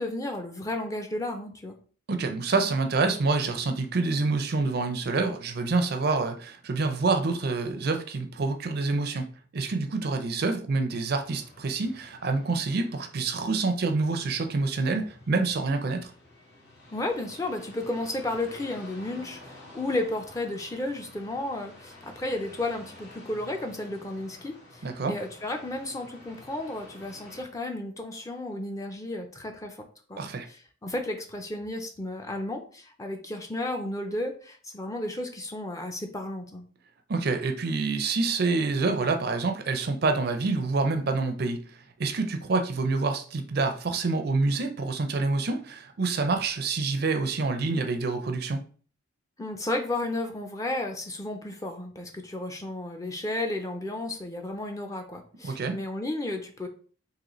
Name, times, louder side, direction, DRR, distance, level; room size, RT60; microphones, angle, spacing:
voice 1, 0.0-1.8 16.9-29.8 30.1-36.7 49.4-56.7, left 2 dB, 15° left, 4 dB, 0.5 m, -33 dB
voice 2, 2.1-9.3 9.5-16.1 24.8-25.1 30.2-30.5 37.1-41.6 42.0-48.6 55.4-55.7, right 3 dB, 50° right, 7 dB, 0.5 m, -27 dB
sound 1, 11.1-27.4, left 2 dB, 55° left, 1.2 m, -50 dB
3.9 x 2.7 x 3.0 m, 0.42 s
head